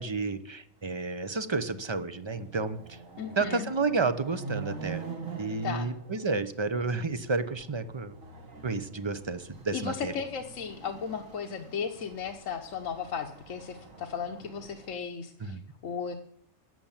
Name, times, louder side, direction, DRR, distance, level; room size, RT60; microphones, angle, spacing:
voice 1, 0.0-3.0 3.4-5.0 5.4-8.2 8.6-10.1 15.4-15.6, right 3 dB, 25° right, 11 dB, 0.8 m, -31 dB
Chatter / Car passing by / Motorcycle, 0.9-1.0 1.4-15.0, right 5 dB, 85° right, 2.2 m, -45 dB
voice 2, 3.2-3.7 5.6-5.9 9.7-16.1, left 7 dB, 80° left, 4 dB, 1.4 m, -35 dB
14.0 x 8.8 x 7.3 m, 0.68 s
omnidirectional pair, 1.3 m